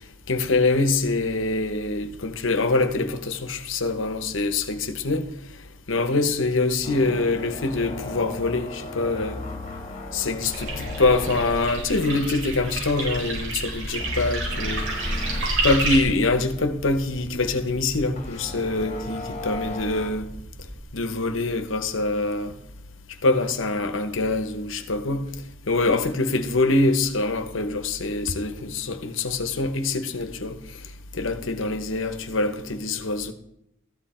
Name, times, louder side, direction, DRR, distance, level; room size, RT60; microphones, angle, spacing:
voice 1, 0.3-5.3 5.9-9.4 10.1-14.8 15.6-20.3 20.9-22.5 23.2-25.2 25.7-30.6 31.1-33.3, left 3 dB, 75° left, 1.1 m, -24 dB
sound 1, 6.8-12.9 13.2-13.4 14.0-15.5 16.0-16.1 18.2-20.1, left 2 dB, 35° left, 1.7 m, -36 dB
sound 2, 10.4-16.0, right 2 dB, 80° right, 5.2 m, -29 dB
sound 3, 10.8-20.8, equal, 20° right, 1.0 m, -41 dB
13.5 x 10.5 x 4.4 m
head